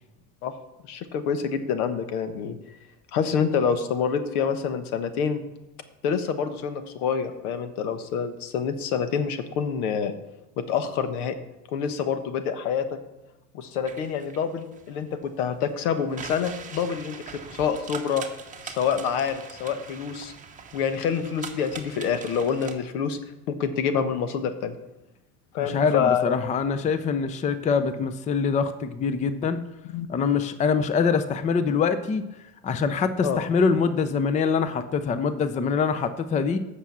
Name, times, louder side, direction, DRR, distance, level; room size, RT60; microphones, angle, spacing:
voice 1, 0.9-2.6 3.1-5.4 6.0-10.1 10.7-11.3 11.7-12.8 13.5-18.2 18.6-20.3 20.7-23.2 23.5-24.7 25.5-26.4 29.9-30.1 33.2-33.4, left 7 dB, 80° left, 10 dB, 1.2 m, -27 dB
sound 1, 13.8-22.7, right 6 dB, 15° right, 1.0 m, -42 dB
voice 2, 25.6-29.6 30.1-32.2 32.6-36.6, left 5 dB, 15° left, 11 dB, 0.5 m, -24 dB
8.1 x 6.2 x 7.4 m, 0.95 s
supercardioid pair, 120°, 43 cm